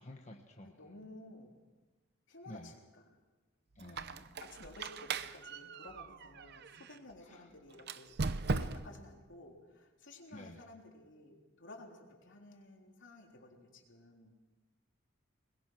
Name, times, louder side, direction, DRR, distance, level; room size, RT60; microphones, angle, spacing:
voice 1, 0.0-0.7 2.5-2.7 3.7-4.2 7.3-7.5 10.3-10.6, left 1 dB, 35° left, 2 dB, 1.3 m, -51 dB
voice 2, 0.6-1.5 2.3-3.2 3.8-8.1 8.5-14.3, left 2 dB, 65° left, 1 dB, 3.6 m, -54 dB
Squeak, 3.8-7.0 7.8-9.1, right 4 dB, 55° right, 0.7 m, -39 dB
22.5 x 21.0 x 6.2 m, 1.3 s
head